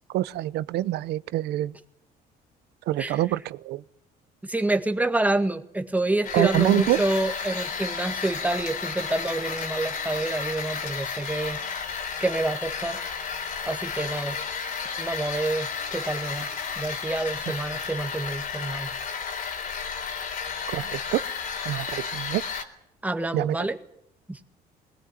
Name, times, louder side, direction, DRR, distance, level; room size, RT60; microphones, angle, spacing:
voice 1, 0.1-1.7 2.9-3.8 6.3-7.0 20.7-21.2 21.6-22.4 23.3-23.5, right 15 dB, 80° right, 17 dB, 0.8 m, -26 dB
voice 2, 4.4-11.6 12.2-13.0 13.7-14.4 15.0-16.5 16.8-18.9 23.0-23.8 24.3-24.4, right 2 dB, 10° right, 6 dB, 1.8 m, -27 dB
sound 1, 6.2-22.6, left 6 dB, 55° left, 3.7 m, -32 dB
21.0 x 19.5 x 9.3 m, 0.75 s
cardioid pair, 110°, 17 cm